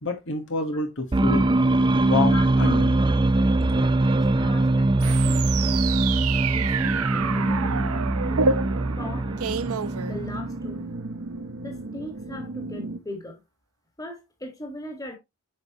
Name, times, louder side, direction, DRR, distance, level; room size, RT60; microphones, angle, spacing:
voice 1, 0.0-1.5 2.0-2.9, left 3 dB, 55° left, 1.5 m, -27 dB
sound 1, 1.1-10.7, right 2 dB, 20° right, 0.4 m, -22 dB
voice 2, 3.5-5.8 6.5-8.5 9.0-9.3 10.0-10.9 11.6-13.4 14.0-15.2, left 1 dB, 15° left, 2.1 m, -39 dB
sound 2, 5.0-10.7, right 5 dB, 85° right, 0.7 m, -29 dB
sound 3, 7.1-13.0, right 2 dB, 55° right, 1.0 m, -36 dB
9.0 x 5.6 x 3.0 m
head